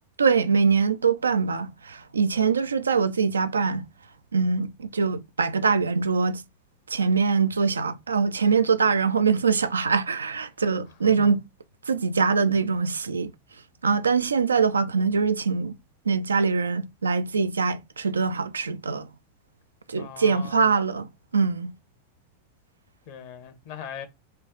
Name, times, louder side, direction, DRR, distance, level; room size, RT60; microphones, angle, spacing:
voice 1, 0.2-3.8 4.3-6.4 6.9-11.4 11.9-13.3 13.8-15.7 16.1-19.1 19.9-21.7, right 5 dB, 75° right, 0.4 m, -23 dB
voice 2, 20.0-20.7 23.1-24.1, left 8 dB, 50° left, 1.0 m, -40 dB
4.3 x 2.4 x 3.7 m
figure-of-eight pair, 90°, 0 cm